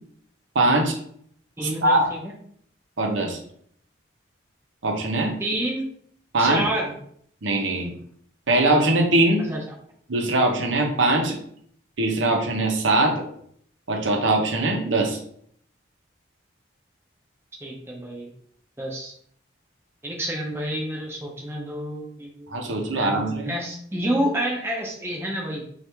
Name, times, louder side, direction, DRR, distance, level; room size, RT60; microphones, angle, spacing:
voice 1, 0.5-1.0 1.8-2.1 3.0-3.4 4.8-5.4 6.3-6.6 7.4-7.9 8.5-9.5 10.1-11.4 12.0-13.2 13.9-15.2 22.5-23.5, right 2 dB, 80° right, 2 dB, 0.7 m, -21 dB
voice 2, 1.6-2.3 5.4-5.9 6.4-6.9 9.4-9.6 17.6-18.3 18.8-19.1 20.0-22.5 22.9-25.6, right 1 dB, 15° right, -1 dB, 0.6 m, -29 dB
3.3 x 2.4 x 4.4 m, 0.64 s
head